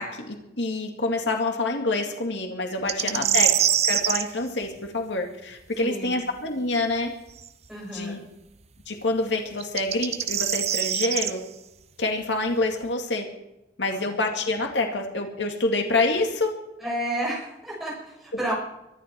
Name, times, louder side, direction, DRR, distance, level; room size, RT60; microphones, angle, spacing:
voice 1, 0.0-7.1 7.9-8.2 8.9-11.4 12.0-13.3 13.8-16.5, left 2 dB, 85° left, 3 dB, 2.3 m, -27 dB
sound 1, 2.9-4.3 7.4-7.5 9.6-11.3, right 10 dB, 35° right, 0.6 m, -23 dB
voice 2, 3.0-3.3 5.8-6.2 7.7-8.2 13.9-14.2 16.8-18.5, right 1 dB, ahead, -6 dB, 7.5 m, -32 dB
24.0 x 12.0 x 4.6 m, 0.92 s
head